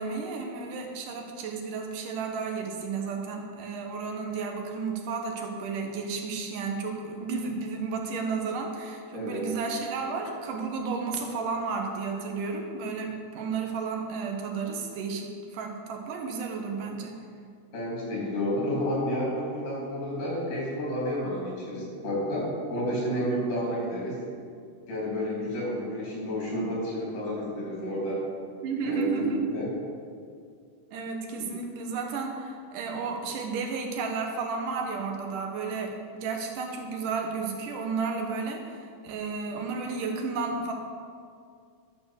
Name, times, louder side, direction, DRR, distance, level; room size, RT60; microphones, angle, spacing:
voice 1, 0.0-17.1 23.3-23.6 28.6-29.6 30.9-40.7, right 4 dB, 85° right, 2 dB, 2.8 m, -32 dB
voice 2, 9.1-9.5 17.7-24.2 24.9-28.2 28.8-29.7 31.4-31.5, equal, 80° left, -5 dB, 4.7 m, -30 dB
11.5 x 6.5 x 6.4 m, 2.3 s
omnidirectional pair, 3.6 m